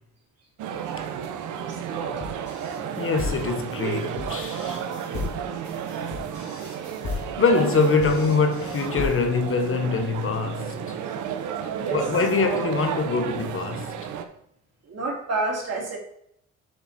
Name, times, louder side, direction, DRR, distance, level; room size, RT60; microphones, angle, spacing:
sound 1, 0.6-14.3, right 8 dB, 80° right, 0.8 m, -32 dB
voice 1, 1.5-2.2 11.7-12.0 14.8-16.0, right 2 dB, 55° right, 2.6 m, -30 dB
sound 2, 2.2-9.5, left 4 dB, 65° left, 2.5 m, -35 dB
voice 2, 3.0-4.8 7.1-11.0 11.9-13.9, left 4 dB, 45° left, 1.1 m, -24 dB
7.2 x 5.6 x 4.2 m
cardioid pair, 90°, 30 cm